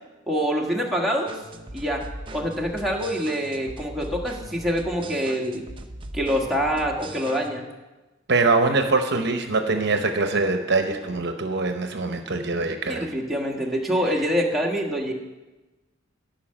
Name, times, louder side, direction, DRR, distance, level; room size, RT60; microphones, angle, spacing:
voice 1, 0.3-1.4 1.7-2.1 2.3-5.6 6.1-7.7 12.9-15.1, equal, ahead, -2 dB, 1.5 m, -25 dB
sound 1, 1.3-7.5, right 1 dB, 25° right, 0.7 m, -39 dB
voice 2, 8.3-13.1, right 3 dB, 60° right, 6 dB, 0.9 m, -23 dB
11.5 x 5.6 x 8.8 m, 1.1 s
head